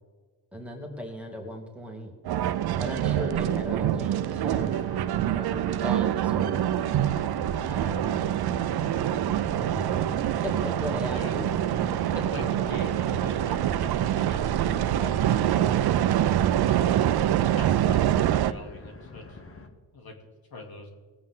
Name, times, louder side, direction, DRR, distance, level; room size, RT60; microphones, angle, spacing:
voice 1, 0.5-2.1 2.8-4.8 5.2-6.7 7.7-8.2 9.5-10.1 10.4-11.5, equal, 5° right, 0 dB, 2.5 m, -37 dB
sound 1, 2.2-18.5, right 11 dB, 55° right, 0.6 m, -25 dB
sound 2, 4.4-19.7, left 3 dB, 30° left, 1.6 m, -43 dB
voice 2, 12.1-16.3 17.0-19.4 19.9-20.1 20.5-20.9, left 3 dB, 55° left, 1 dB, 2.8 m, -43 dB
20.0 x 8.5 x 3.8 m, 1.4 s
cardioid pair, 110°, 45 cm